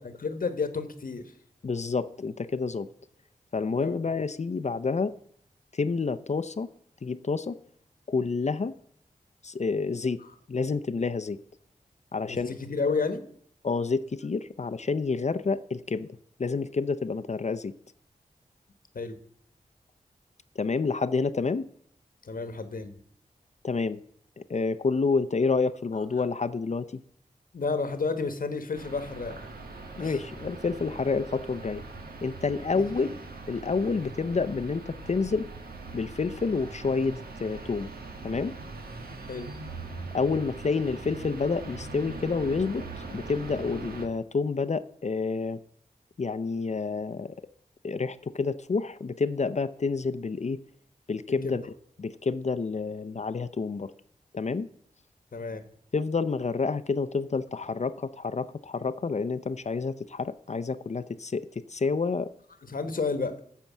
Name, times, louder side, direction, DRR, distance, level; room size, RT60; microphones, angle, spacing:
voice 1, 0.0-1.3 3.7-4.0 10.2-10.3 12.3-13.2 18.9-19.2 22.2-23.0 27.5-29.3 30.0-30.2 32.7-32.9 39.3-39.5 51.4-51.6 55.3-55.6 62.6-63.3, left 4 dB, 65° left, 9 dB, 1.2 m, -31 dB
voice 2, 1.6-2.9 3.5-5.1 5.7-6.7 7.0-7.6 8.1-8.7 9.4-10.2 10.5-11.4 12.1-12.5 13.6-16.1 16.4-17.7 20.6-21.7 23.6-24.0 24.4-27.0 30.0-31.8 32.2-33.2 33.5-35.5 35.9-37.9 38.2-38.6 40.1-42.8 43.1-45.6 46.2-47.4 47.8-50.6 51.1-51.6 52.0-53.9 54.3-54.7 55.9-62.3, left 4 dB, 50° left, 11 dB, 0.6 m, -29 dB
sound 1, 28.7-44.1, right 3 dB, 85° right, 1.4 m, -41 dB
13.0 x 4.6 x 7.3 m, 0.64 s
cardioid pair, 50°, 15 cm